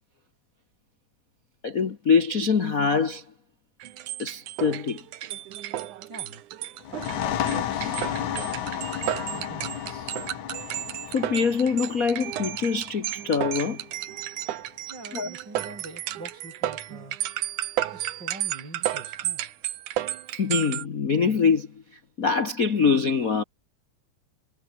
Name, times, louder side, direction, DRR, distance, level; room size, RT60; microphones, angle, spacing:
voice 1, 1.6-3.2 4.2-5.0 11.1-13.8 15.1-15.3 20.4-23.4, left 5 dB, 40° left, 1.2 m, -24 dB
sound 1, 3.8-20.9, right 13 dB, 85° right, 2.7 m, -33 dB
voice 2, 6.1-6.4 7.1-8.7 9.3-10.2 14.9-17.2 17.9-19.5, right 2 dB, 35° right, 8.0 m, -44 dB
sound 2, 6.8-14.2, left 10 dB, 75° left, 3.0 m, -33 dB
omnidirectional pair, 3.5 m